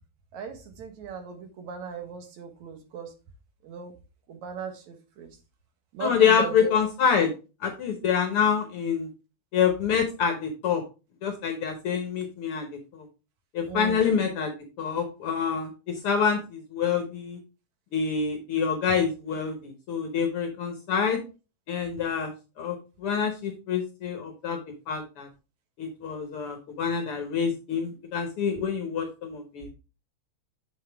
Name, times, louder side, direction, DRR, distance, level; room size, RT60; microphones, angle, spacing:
voice 1, 0.3-3.1 3.6-3.9 4.3-5.3 5.9-6.7 13.7-14.0, right 6 dB, 70° right, 6 dB, 2.6 m, -37 dB
voice 2, 6.0-7.3 7.6-9.1 9.5-10.8 11.2-12.7 12.9-13.0 13.5-15.7 16.0-17.4 17.9-21.2 21.7-22.3 22.6-24.6 24.9-25.3 25.8-29.7, left 7 dB, 60° left, 5 dB, 1.5 m, -26 dB
7.5 x 6.5 x 3.3 m, 0.31 s
omnidirectional pair, 3.5 m